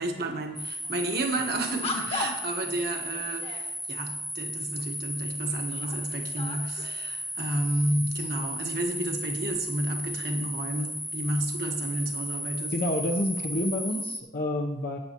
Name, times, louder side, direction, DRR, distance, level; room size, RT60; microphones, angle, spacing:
voice 1, 0.0-12.8, right 1 dB, 60° right, 1.4 m, -31 dB
sound 1, 0.6-14.2, equal, ahead, 0.5 m, -35 dB
sound 2, 0.8-1.0 1.8-2.6 3.1-3.7 4.7-4.8 5.4-7.0, left 3 dB, 35° left, 1.3 m, -36 dB
voice 2, 12.7-15.0, left 1 dB, 55° left, 0.8 m, -28 dB
14.0 x 9.5 x 3.0 m
head